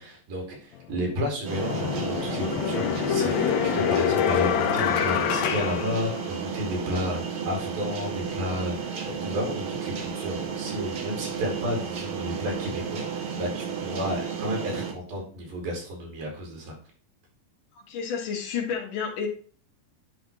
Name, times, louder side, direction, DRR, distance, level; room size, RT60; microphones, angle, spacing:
voice 1, 0.0-16.7, equal, 90° right, -1 dB, 4.7 m, -32 dB
sound 1, 0.7-0.9 1.5-6.7, left 9 dB, 85° left, 1.5 m, -26 dB
sound 2, 1.4-14.9, right 6 dB, 70° right, 1.2 m, -33 dB
voice 2, 17.9-19.3, left 6 dB, 70° left, 0 dB, 2.9 m, -30 dB
10.0 x 3.4 x 4.2 m, 0.42 s
omnidirectional pair, 4.1 m